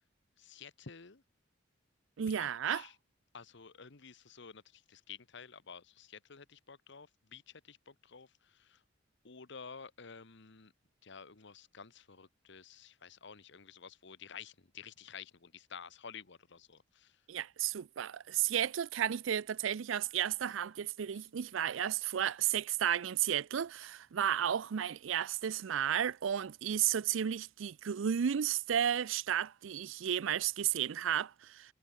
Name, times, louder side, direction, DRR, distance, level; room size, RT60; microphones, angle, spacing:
voice 1, 0.4-1.2 2.3-2.9 3.3-8.8 9.2-10.7 11.0-17.2 21.1-21.2, left 6 dB, 65° left, 1.2 m, -51 dB
voice 2, 2.2-2.9 17.3-31.7, right 9 dB, 85° right, 0.4 m, -33 dB
head